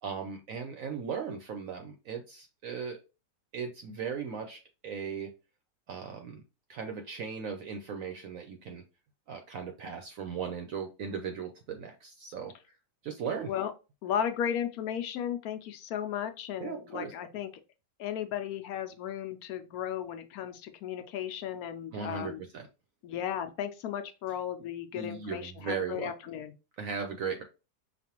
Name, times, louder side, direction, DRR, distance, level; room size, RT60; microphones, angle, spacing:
voice 1, 0.0-3.0 3.5-5.3 5.9-6.4 6.7-8.8 9.3-12.5 13.0-13.5 16.6-17.1 21.9-22.7 24.9-26.1 26.8-27.4, right 6 dB, 65° right, 0.9 m, -37 dB
voice 2, 14.0-17.5 18.0-22.4 23.0-26.5, left 9 dB, 70° left, 1.0 m, -35 dB
5.1 x 2.4 x 2.9 m
omnidirectional pair, 1.8 m